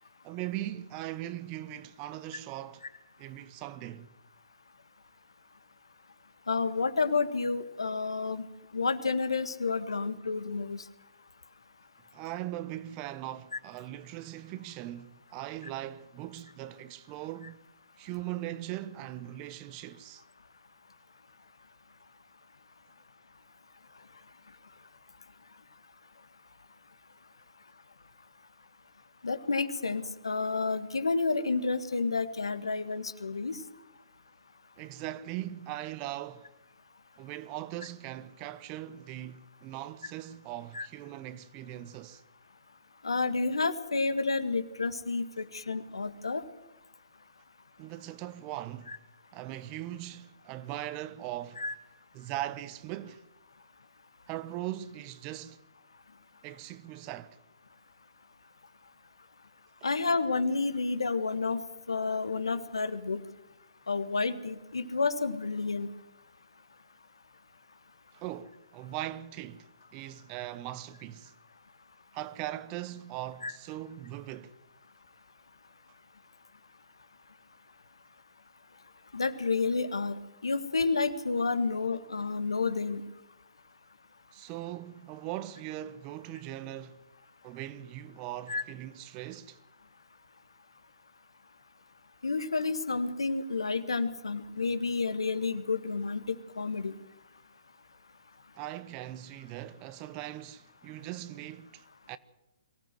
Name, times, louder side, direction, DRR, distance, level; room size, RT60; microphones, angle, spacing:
voice 1, 0.2-2.8 3.2-4.1 12.1-17.6 18.0-20.2 34.8-36.5 37.2-42.2 47.8-49.0 49.3-51.6 52.1-53.2 54.3-55.6 56.4-57.4 68.1-71.3 72.1-74.6 84.3-87.0 87.4-89.6 98.5-102.2, right 14 dB, 30° right, 1.0 m, -40 dB
voice 2, 6.5-8.4 8.7-10.8 29.2-33.6 40.7-40.9 43.0-46.4 48.9-49.0 51.6-51.7 59.8-61.6 61.9-63.2 63.9-65.9 73.4-73.5 79.1-83.0 88.5-88.6 92.2-97.0, left 4 dB, 75° left, 1.7 m, -30 dB
23.5 x 15.5 x 7.7 m
figure-of-eight pair, 130°, 3 cm